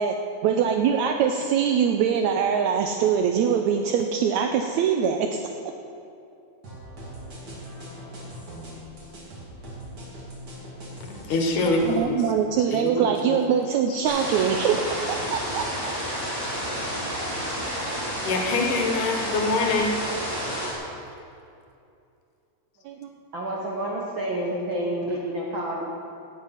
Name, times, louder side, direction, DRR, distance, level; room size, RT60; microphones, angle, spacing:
voice 1, 0.4-5.4 11.8-16.0 22.9-23.1, right 7 dB, 80° right, 4 dB, 1.7 m, -23 dB
sound 1, 6.6-12.0, equal, 40° right, 3.4 m, -41 dB
voice 2, 11.0-12.2 12.7-13.4 18.2-19.9, left 3 dB, 70° left, 2 dB, 2.8 m, -25 dB
sound 2, 14.0-20.7, equal, 5° right, 2.6 m, -30 dB
voice 3, 23.3-25.9, right 1 dB, 60° right, -3 dB, 1.3 m, -29 dB
17.5 x 7.6 x 5.9 m, 2.6 s
omnidirectional pair, 3.8 m